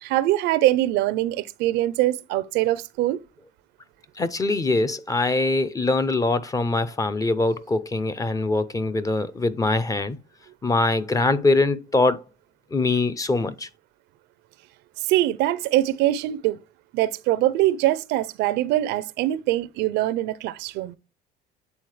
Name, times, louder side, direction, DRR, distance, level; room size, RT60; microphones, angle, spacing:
voice 1, 0.0-3.2 15.0-16.6 16.9-21.0, right 15 dB, 85° right, 0.5 m, -23 dB
voice 2, 4.2-10.2 10.6-12.2 12.7-13.7, left 3 dB, 20° left, 0.5 m, -23 dB
8.4 x 3.7 x 3.2 m
cardioid pair, 110°, 17 cm